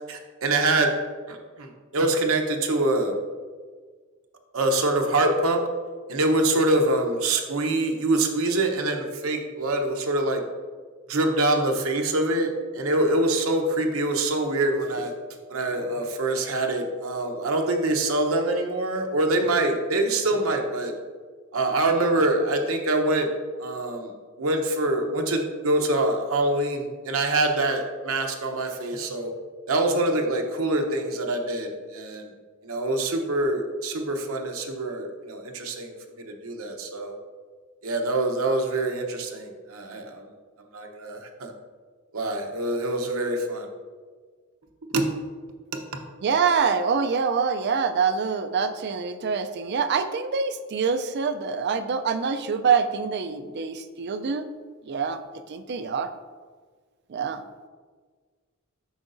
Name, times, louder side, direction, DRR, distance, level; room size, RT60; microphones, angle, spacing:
voice 1, 0.1-0.9 1.3-3.2 4.5-5.6 6.1-10.4 11.1-15.1 15.5-20.9 21.5-23.3 23.6-24.1 24.4-29.3 29.7-32.3 32.6-37.2 37.8-40.3 40.7-41.5 42.1-43.7 44.9-45.1 45.9-46.0, right 2 dB, 75° right, 3 dB, 0.8 m, -25 dB
voice 2, 46.2-54.5 54.9-55.2 55.5-56.1 57.1-57.4, right 5 dB, 50° right, 10 dB, 0.4 m, -25 dB
8.1 x 5.8 x 2.6 m, 1.5 s
head